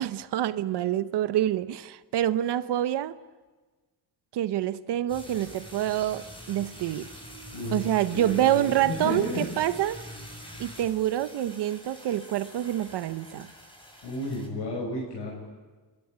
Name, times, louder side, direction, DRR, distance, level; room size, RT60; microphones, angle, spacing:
voice 1, 0.0-3.2 4.3-7.1 7.7-10.0 10.6-13.5, right 12 dB, 75° right, 0.9 m, -27 dB
sound 1, 5.1-14.5, equal, 10° left, 6.3 m, -45 dB
voice 2, 7.5-7.9 8.1-9.5 14.0-15.3, left 2 dB, 85° left, 6.4 m, -32 dB
29.5 x 13.5 x 9.8 m
cardioid pair, 110°, 41 cm